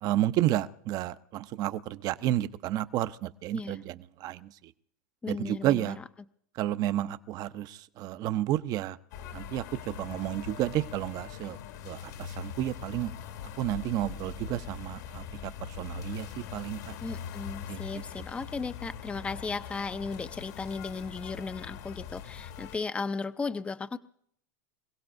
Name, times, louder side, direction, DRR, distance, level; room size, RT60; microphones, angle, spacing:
voice 1, 0.0-4.5 5.3-6.0 6.6-9.0 9.3-11.6 11.8-13.1 13.6-16.8 17.7-17.8, right 13 dB, 45° right, 14 dB, 0.7 m, -31 dB
voice 2, 5.2-6.0 17.0-24.0, left 4 dB, 15° left, 11 dB, 0.5 m, -35 dB
sound 1, 9.1-22.8, left 8 dB, 75° left, 2.2 m, -42 dB
27.0 x 16.5 x 2.6 m, 0.69 s
hypercardioid pair, 115°, 9 cm